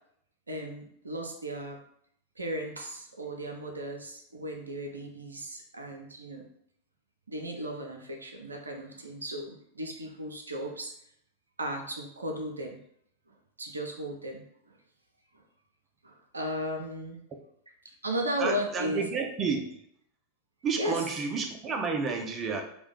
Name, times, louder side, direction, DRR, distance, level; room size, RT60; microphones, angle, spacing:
voice 1, 0.5-1.8 2.4-6.4 7.3-10.9 11.6-12.8 13.6-14.4 16.0-17.2 18.0-19.0 20.8-21.0, equal, 80° right, 2 dB, 0.5 m, -35 dB
voice 2, 18.4-19.6 20.6-22.6, right 5 dB, 25° right, 3 dB, 0.5 m, -30 dB
2.5 x 2.1 x 3.6 m, 0.69 s
figure-of-eight pair, 90°, 0 cm